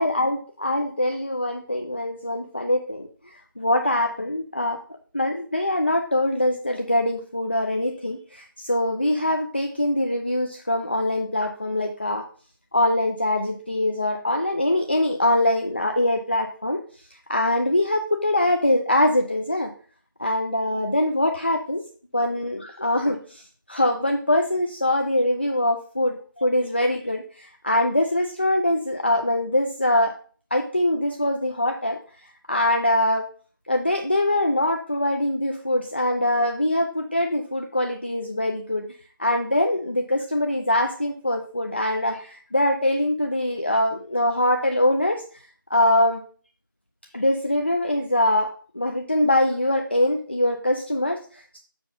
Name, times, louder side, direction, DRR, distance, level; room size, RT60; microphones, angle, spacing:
voice 1, 0.0-4.8 5.1-12.3 12.7-16.8 17.3-19.7 20.2-21.8 22.1-30.1 30.5-32.0 32.5-33.3 33.7-38.9 39.2-45.2 45.7-46.2 47.1-51.6, left 1 dB, 30° left, 3 dB, 0.5 m, -23 dB
6.9 x 5.6 x 3.8 m, 0.41 s
figure-of-eight pair, 175°, 12 cm